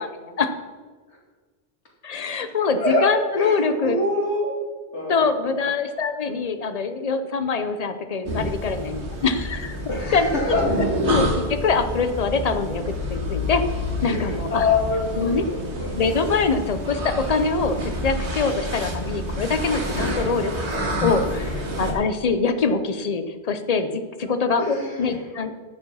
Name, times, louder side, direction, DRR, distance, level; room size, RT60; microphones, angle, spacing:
voice 1, 2.0-4.0 5.1-9.8 10.1-10.3 11.1-13.6 14.0-14.6 15.2-15.4 16.0-25.5, left 4 dB, 40° left, 9 dB, 0.8 m, -24 dB
voice 2, 3.3-4.5 4.9-5.2 9.9-10.9 14.0-16.0 18.5-18.6 21.3-21.5 24.6-25.2, left 2 dB, 90° left, -3 dB, 2.8 m, -25 dB
sound 1, 8.2-21.9, equal, 85° right, 2.0 m, -28 dB
11.0 x 7.2 x 5.6 m, 1.4 s
omnidirectional pair, 1.1 m